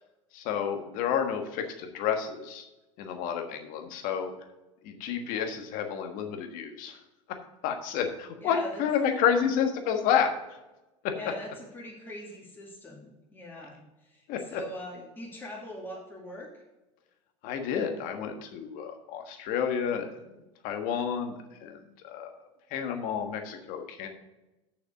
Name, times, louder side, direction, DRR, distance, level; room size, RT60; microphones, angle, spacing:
voice 1, 0.3-2.7 3.0-4.3 4.8-7.0 7.6-10.4 11.0-11.1 14.3-14.6 17.4-20.3 20.6-22.3 22.7-24.1, left 8 dB, 55° left, 5 dB, 1.5 m, -30 dB
voice 2, 8.4-8.8 11.1-16.6, equal, 10° left, -3 dB, 2.4 m, -42 dB
7.1 x 5.8 x 6.5 m, 1.0 s
hypercardioid pair, 85°, 17 cm